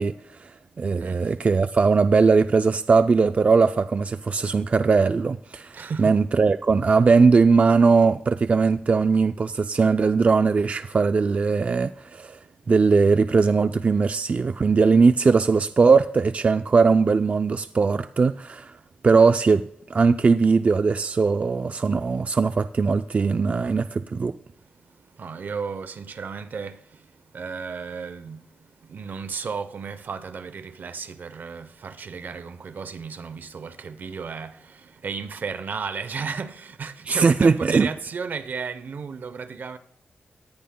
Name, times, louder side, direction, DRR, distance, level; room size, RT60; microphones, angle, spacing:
voice 1, 0.0-12.4 12.7-18.8 19.0-19.6 19.9-24.3 37.1-37.9, right 4 dB, 40° right, 0.3 m, -20 dB
voice 2, 1.0-1.3 5.7-6.2 25.2-27.1 27.3-39.8, right 5 dB, 65° right, 0.7 m, -34 dB
18.5 x 14.0 x 2.2 m
cardioid pair, 80°, 3 cm